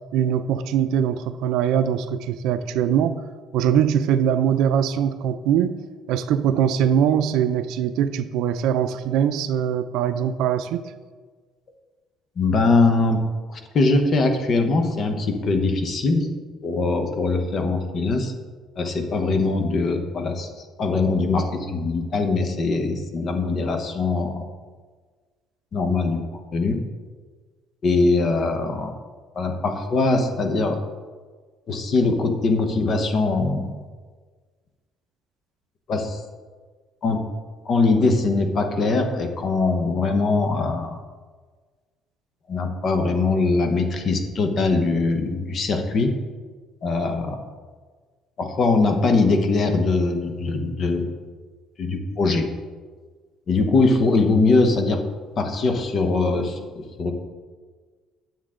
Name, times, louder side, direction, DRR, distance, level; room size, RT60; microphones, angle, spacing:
voice 1, 0.1-3.3 3.5-5.8 6.1-10.8, right 9 dB, 80° right, 10 dB, 0.4 m, -22 dB
voice 2, 12.4-13.2 13.5-16.3 16.6-18.3 18.8-20.5 20.8-24.4 25.7-26.2 26.5-26.8 27.8-28.9 29.3-30.8 31.7-33.7 35.9-36.2 37.0-37.3 37.6-41.0 42.5-46.1 46.8-47.4 48.4-51.1 51.8-52.5 53.5-55.0 55.4-57.1, left 3 dB, 35° left, 6 dB, 0.9 m, -22 dB
9.9 x 7.2 x 3.7 m, 1.5 s
cardioid pair, 160°, 0 cm